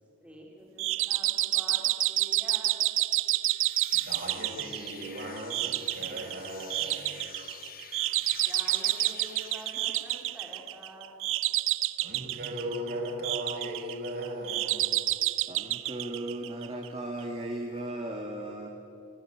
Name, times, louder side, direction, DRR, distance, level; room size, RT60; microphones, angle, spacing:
voice 1, 0.2-2.8 8.4-11.2, right 1 dB, 5° right, -3 dB, 3.9 m, -47 dB
sound 1, 0.8-16.9, right 15 dB, 65° right, 0.6 m, -29 dB
sound 2, 3.4-10.8, left 9 dB, 40° left, 1.1 m, -48 dB
voice 2, 3.9-7.3 12.0-15.1, right 1 dB, 45° right, 0 dB, 5.3 m, -37 dB
voice 3, 15.3-18.7, right 1 dB, 25° right, 1 dB, 1.8 m, -36 dB
25.0 x 17.0 x 10.0 m, 2.8 s
head